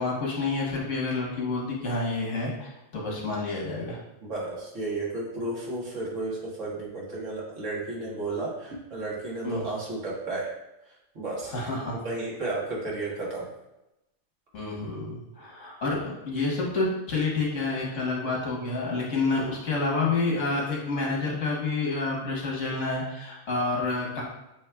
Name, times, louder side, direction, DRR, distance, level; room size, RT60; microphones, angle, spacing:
voice 1, 0.0-4.0 9.4-9.7 11.5-12.0 14.5-24.2, left 3 dB, 90° left, -3 dB, 1.6 m, -29 dB
voice 2, 4.2-10.5 11.2-11.5 11.9-13.5, right 2 dB, 85° right, -5 dB, 1.7 m, -33 dB
7.2 x 3.0 x 2.3 m, 0.93 s
omnidirectional pair, 1.2 m